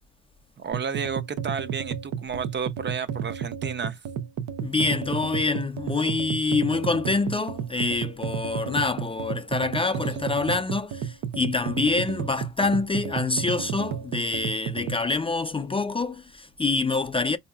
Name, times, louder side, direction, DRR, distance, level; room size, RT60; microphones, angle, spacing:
voice 1, 0.6-4.0, right 6 dB, 35° right, 0.6 m, -32 dB
sound 1, 0.7-15.0, right 8 dB, 90° right, 0.7 m, -32 dB
voice 2, 4.6-17.4, left 3 dB, 20° left, 0.4 m, -26 dB
4.5 x 2.7 x 2.3 m
cardioid pair, 90°, 30 cm